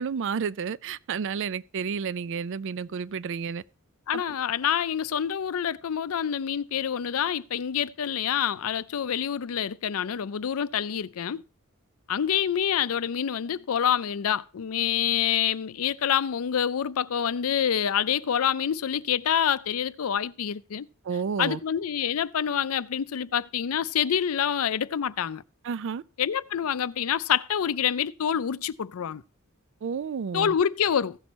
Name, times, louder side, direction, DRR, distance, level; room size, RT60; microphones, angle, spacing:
voice 1, 0.0-3.6 4.1-4.2 21.0-21.6 25.6-26.0 29.8-30.5, right 6 dB, 60° right, 0.4 m, -31 dB
voice 2, 4.1-11.4 12.1-20.9 21.4-25.4 26.2-29.2 30.3-31.2, left 8 dB, 75° left, 0.5 m, -27 dB
15.5 x 6.2 x 4.2 m
head